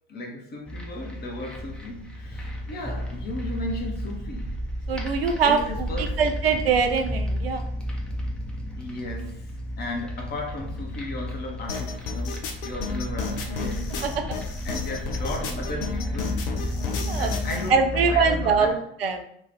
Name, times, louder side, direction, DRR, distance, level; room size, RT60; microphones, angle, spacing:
voice 1, 0.1-4.6 5.4-6.2 8.8-14.3 14.6-16.5 17.1-18.8, left 1 dB, 35° left, 1.0 m, -35 dB
sound 1, 0.7-18.7, equal, 5° left, 0.7 m, -32 dB
voice 2, 4.9-5.6 6.2-7.6 17.0-17.3 17.7-19.2, right 5 dB, 80° right, 0.5 m, -22 dB
sound 2, 11.7-17.7, left 5 dB, 65° left, 0.7 m, -33 dB
3.0 x 2.4 x 3.9 m
figure-of-eight pair, 65°, 30 cm